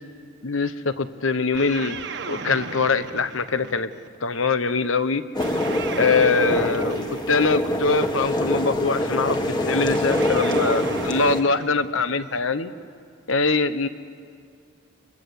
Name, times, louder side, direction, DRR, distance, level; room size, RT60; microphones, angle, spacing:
voice 1, 0.4-2.0 2.3-3.9 4.2-5.2 6.0-12.7 13.3-13.9, left 4 dB, 70° left, 12 dB, 1.1 m, -23 dB
sound 1, 1.5-4.2 5.4-8.0 9.9-12.5, right 4 dB, 55° right, 1.3 m, -36 dB
sound 2, 5.3-11.4, left 1 dB, 20° left, 1.7 m, -24 dB
29.5 x 23.5 x 8.3 m, 2.2 s
head